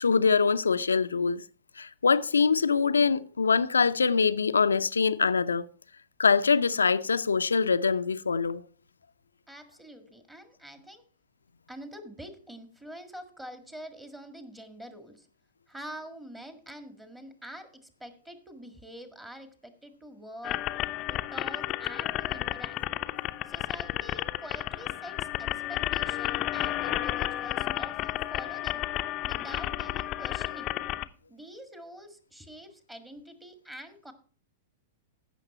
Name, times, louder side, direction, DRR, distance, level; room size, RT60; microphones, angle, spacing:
voice 1, 0.0-1.4 1.8-5.7 6.2-8.6, left 5 dB, 80° left, 0.5 m, -24 dB
voice 2, 9.5-11.0 11.7-15.3 15.7-20.6 21.1-22.8 23.4-28.8 29.3-30.7 31.3-34.1, equal, 10° right, 1.8 m, -46 dB
sound 1, 20.4-31.0, left 14 dB, 35° left, 0.6 m, -32 dB
15.5 x 6.4 x 4.2 m
figure-of-eight pair, 100°, 0 cm